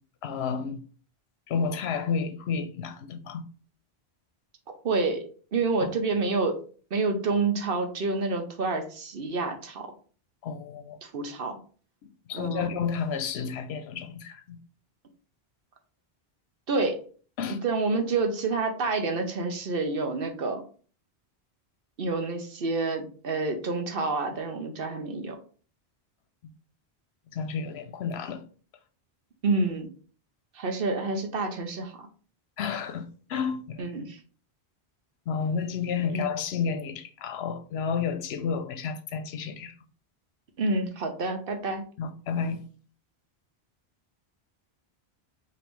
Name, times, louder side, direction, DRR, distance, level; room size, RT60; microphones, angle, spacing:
voice 1, 0.2-0.8 1.5-3.4 5.8-5.9 10.4-11.0 12.3-14.6 17.4-17.6 27.3-28.4 32.6-33.8 35.3-39.7 42.0-42.6, left 6 dB, 80° left, 0.9 m, -31 dB
voice 2, 4.8-5.2 5.5-6.6 6.9-9.9 11.0-11.6 12.3-12.7 16.7-17.0 17.6-20.6 22.0-25.4 29.4-29.9 30.5-31.9 33.8-34.2 36.1-36.3 40.6-41.8, right 3 dB, 60° right, 1.0 m, -28 dB
5.2 x 2.9 x 3.0 m
omnidirectional pair, 1.1 m